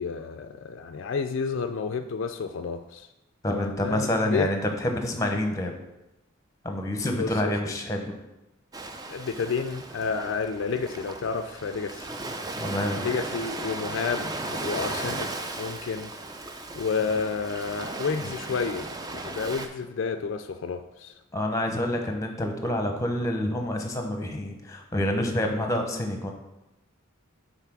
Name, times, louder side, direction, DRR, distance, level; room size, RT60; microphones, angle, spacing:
voice 1, 0.0-3.1 3.5-4.5 7.1-7.7 9.1-12.1 13.0-16.1 16.7-21.2, left 5 dB, 60° left, 8 dB, 0.4 m, -31 dB
voice 2, 3.4-5.7 6.6-8.1 12.6-13.0 18.2-18.3 21.3-26.3, left 1 dB, 15° left, 3 dB, 0.8 m, -27 dB
Ocean, 8.7-19.7, right 2 dB, 20° right, 0.4 m, -36 dB
5.7 x 4.1 x 6.0 m, 0.96 s
head